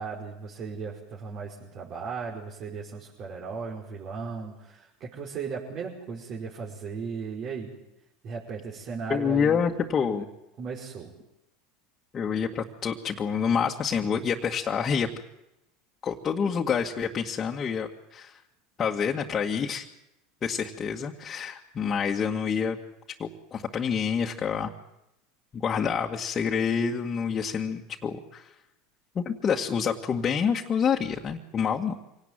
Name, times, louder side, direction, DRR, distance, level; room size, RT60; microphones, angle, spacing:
voice 1, 0.0-7.7 8.2-9.6 10.6-11.1, right 5 dB, 50° right, -3 dB, 5.2 m, -36 dB
voice 2, 9.1-10.3 12.1-15.1 16.0-18.4 18.8-19.9 20.4-22.8 23.2-24.7 25.5-28.5 29.2-31.9, left 6 dB, 30° left, -1 dB, 2.0 m, -27 dB
26.0 x 18.0 x 9.2 m, 0.87 s
hypercardioid pair, 90°, 0 cm